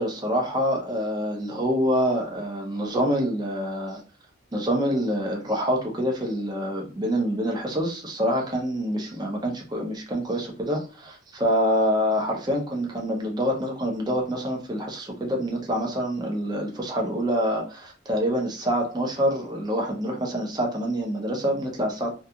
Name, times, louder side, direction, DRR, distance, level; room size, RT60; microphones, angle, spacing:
voice 1, 0.0-4.0 4.5-22.1, equal, 20° right, 0 dB, 0.5 m, -26 dB
2.3 x 2.3 x 2.7 m, 0.38 s
head